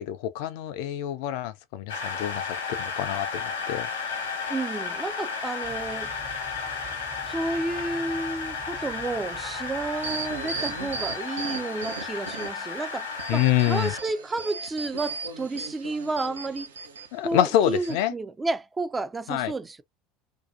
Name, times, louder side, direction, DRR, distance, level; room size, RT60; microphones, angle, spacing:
voice 1, 0.0-2.5 2.8-3.9 13.3-13.9 17.1-18.1 19.3-19.5, left 12 dB, 65° left, 0.4 m, -26 dB
sound 1, 1.9-14.0, left 5 dB, 80° left, 1.0 m, -33 dB
voice 2, 4.5-6.1 7.2-16.7 17.2-19.8, right 2 dB, 20° right, 0.4 m, -31 dB
sound 2, 5.6-11.2, right 5 dB, 40° right, 0.9 m, -46 dB
sound 3, 10.0-12.7 13.1-17.1 17.6-17.9, right 4 dB, 85° right, 0.6 m, -37 dB
2.6 x 2.3 x 2.4 m
hypercardioid pair, 75°, 0 cm